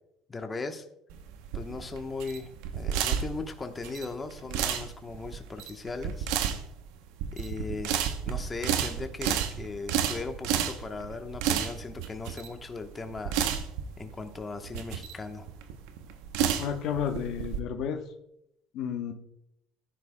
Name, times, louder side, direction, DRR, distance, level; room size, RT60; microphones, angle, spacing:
voice 1, 0.3-0.8 1.5-6.3 7.3-13.4 14.0-15.5, left 3 dB, 25° left, 6 dB, 1.0 m, -38 dB
sound 1, 1.1-17.6, right 9 dB, 80° right, 0.8 m, -31 dB
voice 2, 16.6-18.0 18.7-19.1, left 8 dB, 65° left, 5 dB, 1.0 m, -31 dB
14.0 x 10.0 x 2.2 m, 0.79 s
supercardioid pair, 80°, 0 cm